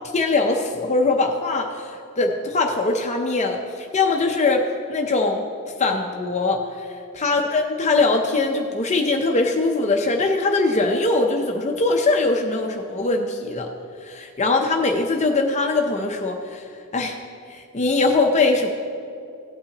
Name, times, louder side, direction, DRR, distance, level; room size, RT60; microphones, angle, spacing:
voice 1, 0.1-4.6 4.9-5.4 5.8-6.6 7.1-13.7 14.0-16.6 16.9-17.2 17.5-18.7, left 3 dB, 30° left, 3 dB, 0.6 m, -21 dB
16.5 x 8.5 x 2.9 m, 2.5 s
head